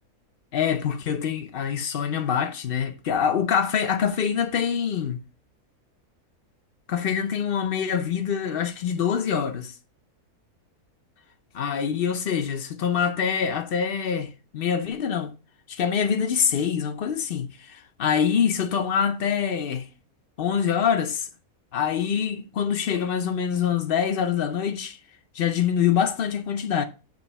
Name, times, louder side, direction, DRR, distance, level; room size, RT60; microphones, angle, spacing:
voice 1, 0.5-5.2 6.9-9.7 11.5-15.3 15.7-19.9 20.4-21.3 21.7-25.0 25.3-26.8, left 7 dB, 60° left, 0.5 m, -25 dB
7.8 x 3.1 x 5.4 m
omnidirectional pair, 1.7 m